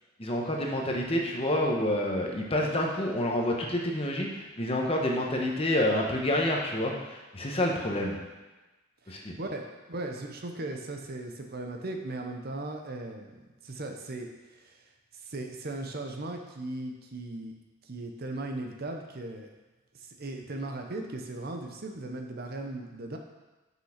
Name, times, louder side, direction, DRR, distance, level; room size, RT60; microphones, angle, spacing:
voice 1, 0.2-8.2 9.1-9.4, left 1 dB, 30° left, 0 dB, 1.1 m, -28 dB
voice 2, 9.0-14.8 15.1-17.5 17.8-19.5 20.0-23.2, right 2 dB, 50° right, 3 dB, 0.8 m, -38 dB
6.1 x 5.6 x 5.8 m, 1.1 s
head